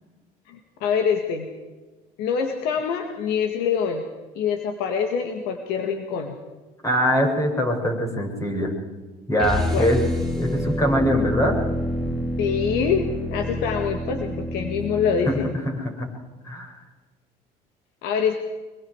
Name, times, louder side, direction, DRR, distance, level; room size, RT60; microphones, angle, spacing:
voice 1, 0.5-1.5 2.2-4.0 4.4-6.3 9.7-9.9 12.4-15.5 18.0-18.4, left 6 dB, 80° left, 5 dB, 2.1 m, -25 dB
voice 2, 6.8-8.7 9.3-10.0 10.4-11.6 15.4-16.1 16.4-16.7, equal, 20° left, 2 dB, 6.7 m, -23 dB
sound 1, 9.4-15.5, equal, ahead, 7.5 m, -28 dB
24.5 x 22.5 x 4.9 m, 1.3 s
cardioid pair, 115°, 16 cm